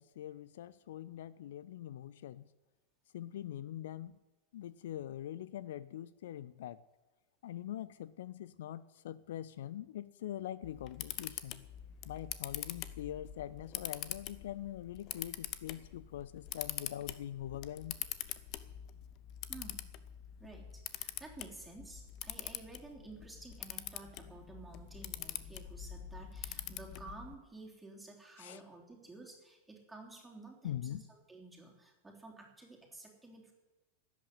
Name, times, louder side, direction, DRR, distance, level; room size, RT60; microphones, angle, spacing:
voice 1, 0.0-2.4 3.1-4.1 4.5-6.8 7.4-11.6 12.0-18.0 28.4-28.6 30.6-31.0, left 12 dB, 60° left, 19 dB, 0.4 m, -43 dB
Camera, 10.6-27.3, left 12 dB, 40° left, 0.8 m, -44 dB
voice 2, 19.5-19.8 20.4-33.5, right 3 dB, 5° right, -1 dB, 3.4 m, -52 dB
12.5 x 8.4 x 9.9 m, 1.1 s
figure-of-eight pair, 90°, 0 cm